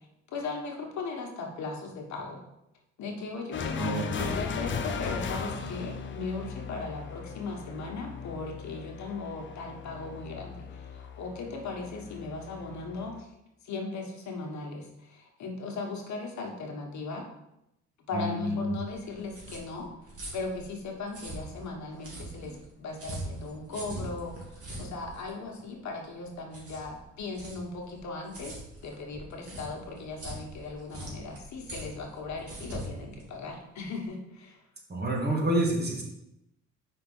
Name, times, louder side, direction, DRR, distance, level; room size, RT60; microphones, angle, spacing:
voice 1, 0.3-2.4 3.0-3.9 4.3-13.3 13.6-17.2 18.1-19.9 20.3-34.6 35.1-35.2, left 3 dB, 65° left, 1 dB, 1.5 m, -38 dB
sound 1, 3.5-13.2, left 5 dB, 40° left, 0.7 m, -37 dB
voice 2, 3.8-4.3 18.1-18.7 34.9-36.0, right 1 dB, 35° right, -1 dB, 1.9 m, -28 dB
sound 2, 18.9-34.1, right 1 dB, 50° right, 2.4 m, -43 dB
5.5 x 3.9 x 5.6 m, 0.84 s
cardioid pair, 90°, 30 cm